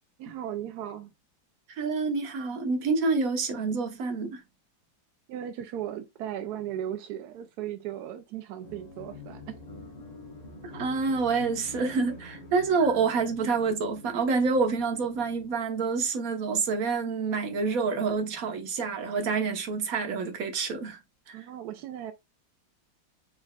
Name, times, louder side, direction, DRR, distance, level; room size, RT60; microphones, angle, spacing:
voice 1, 0.2-1.1 5.3-9.6 21.3-22.1, right 11 dB, 75° right, 0.9 m, -37 dB
voice 2, 1.8-4.4 10.7-21.0 21.3-21.4, right 4 dB, 50° right, 1.4 m, -27 dB
sound 1, 8.6-16.2, left 2 dB, 30° left, 0.9 m, -47 dB
4.6 x 4.3 x 2.3 m
omnidirectional pair, 2.1 m